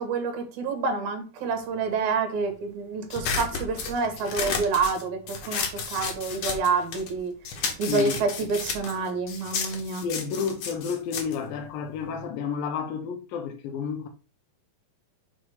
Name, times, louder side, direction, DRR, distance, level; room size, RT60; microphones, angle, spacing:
voice 1, 0.0-5.6 5.9-7.3 7.8-10.0, right 4 dB, 60° right, 2.6 m, -28 dB
sound 1, 3.1-7.2 7.4-12.3, left 5 dB, 60° left, 1.9 m, -32 dB
voice 2, 10.0-14.1, left 6 dB, 80° left, 2.6 m, -31 dB
6.4 x 3.6 x 4.9 m
omnidirectional pair, 4.1 m